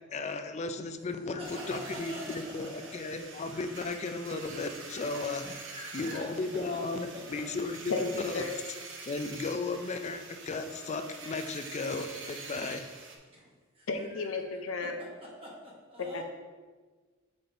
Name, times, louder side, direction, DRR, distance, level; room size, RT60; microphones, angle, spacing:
voice 1, 0.1-5.4 5.9-8.5 9.1-12.9, left 3 dB, 35° left, 8 dB, 0.4 m, -35 dB
sound 1, 1.4-13.2, right 4 dB, 65° right, 0.8 m, -45 dB
voice 2, 5.4-6.2 7.1-7.2 13.3-14.6 15.4-16.2, equal, 30° right, -4 dB, 1.1 m, -47 dB
voice 3, 7.9-8.5 13.9-14.9 16.1-16.2, left 3 dB, 80° left, 5 dB, 0.6 m, -33 dB
5.2 x 4.1 x 4.4 m, 1.4 s
head